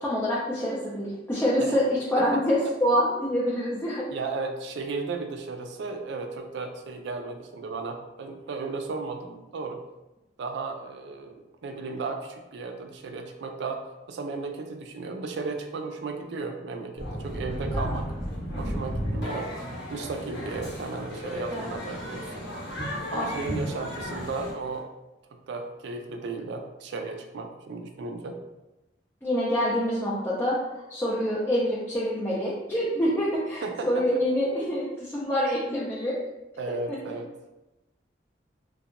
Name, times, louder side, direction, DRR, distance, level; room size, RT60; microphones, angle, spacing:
voice 1, 0.0-4.1 17.7-18.0 21.5-21.7 23.1-23.3 29.2-30.6 30.9-36.2 36.9-37.1, equal, 15° left, -7 dB, 0.4 m, -26 dB
voice 2, 4.1-9.8 10.4-13.8 14.1-18.1 18.6-19.5 19.9-22.5 23.1-24.9 25.5-28.4 33.6-34.2 36.6-37.3, right 4 dB, 70° right, 5 dB, 0.3 m, -35 dB
sound 1, 17.0-24.8, equal, 65° left, 1.0 m, -34 dB
2.7 x 2.2 x 2.4 m, 1.0 s
head